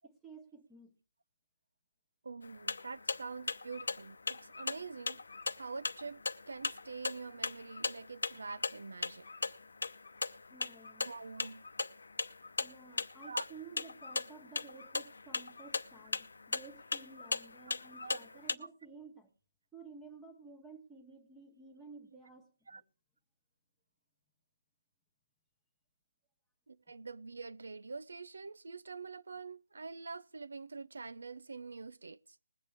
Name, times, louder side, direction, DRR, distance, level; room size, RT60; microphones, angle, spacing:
voice 1, 0.0-0.9 10.5-11.1 12.6-19.3 19.7-22.8, right 4 dB, 5° right, 1.1 m, -53 dB
voice 2, 2.2-5.2 5.6-9.3 11.0-11.6 13.2-13.5 18.0-18.7 22.7-22.8 26.7-32.4, right 4 dB, 80° right, 0.5 m, -45 dB
sound 1, 2.4-18.5, left 4 dB, 85° left, 0.8 m, -39 dB
21.0 x 8.2 x 3.4 m
hypercardioid pair, 170°, 0 cm